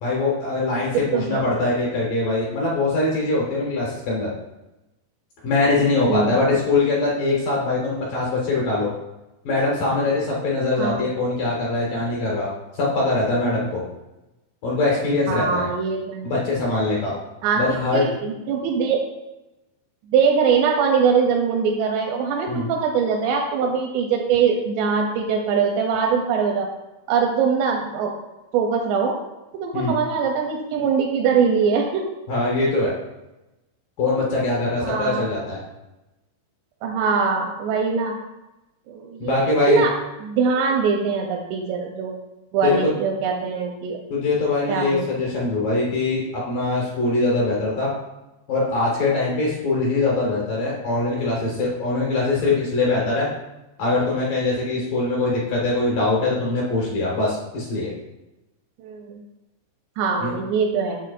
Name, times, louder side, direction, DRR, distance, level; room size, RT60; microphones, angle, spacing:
voice 1, 0.0-4.3 5.4-8.9 9.4-13.8 14.6-15.7 16.2-17.1 17.6-18.0 22.5-22.7 29.7-29.9 32.3-32.9 34.0-35.6 39.2-39.8 42.6-42.9 44.1-47.9 48.5-53.3 53.8-57.9 60.2-60.3, left 2 dB, 65° left, -4 dB, 2.3 m, -22 dB
voice 2, 0.7-1.4 6.0-6.4 10.8-11.0 15.3-16.3 17.4-19.0 20.1-26.7 27.1-28.1 28.5-29.2 29.5-32.0 34.8-35.3 36.8-38.2 38.9-39.9 40.2-42.1 42.5-44.0 44.7-45.1 58.8-59.2 60.0-61.0, right 6 dB, 85° right, 2 dB, 2.5 m, -22 dB
9.2 x 7.0 x 2.5 m, 1.0 s
omnidirectional pair, 5.4 m